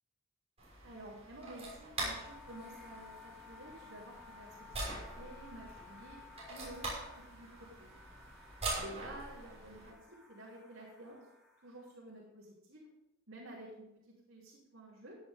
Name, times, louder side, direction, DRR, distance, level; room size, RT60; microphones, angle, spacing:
sound 1, 0.6-9.9, right 2 dB, 30° right, 5.9 m, -44 dB
voice 1, 0.8-6.2 6.5-6.9 7.3-7.9 8.8-10.0 10.3-11.2 11.6-12.9 13.3-15.2, right 1 dB, 75° right, -7 dB, 3.7 m, -51 dB
sound 2, 2.2-12.0, left 5 dB, 5° right, 2.9 m, -57 dB
16.0 x 9.9 x 3.8 m, 0.86 s
head